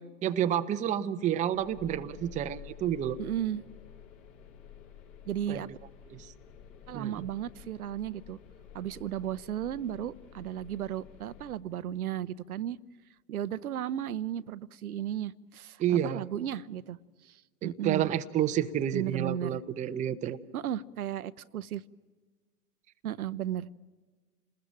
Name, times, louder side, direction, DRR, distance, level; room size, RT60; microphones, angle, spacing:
voice 1, 0.2-3.2 5.5-5.6 6.1-6.2 6.9-7.1 15.8-16.2 17.6-20.4, right 10 dB, 15° right, 9 dB, 0.7 m, -29 dB
sound 1, 1.5-11.6, left 8 dB, 50° left, 5.0 m, -51 dB
voice 2, 3.2-3.6 5.3-5.7 6.9-8.4 8.7-12.8 13.3-17.0 17.2-18.1 18.9-19.6 20.5-21.8 23.0-23.7, right 10 dB, 65° right, 15 dB, 0.8 m, -35 dB
28.5 x 20.5 x 9.0 m, 1.4 s
figure-of-eight pair, 105°, 47 cm